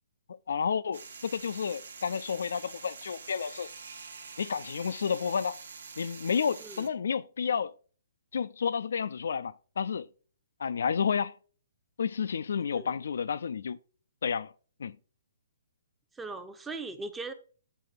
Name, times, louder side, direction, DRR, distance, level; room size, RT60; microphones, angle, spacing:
voice 1, 0.5-3.7 4.4-5.6 6.0-7.7 8.3-10.1 10.6-11.3 12.0-13.8 14.2-14.5 14.8-15.0, left 6 dB, 65° left, 0.4 m, -31 dB
sound 1, 0.9-6.9, right 5 dB, 65° right, 0.9 m, -46 dB
voice 2, 16.1-17.3, right 3 dB, 10° right, 0.8 m, -39 dB
8.2 x 4.0 x 4.9 m
figure-of-eight pair, 130°, 0 cm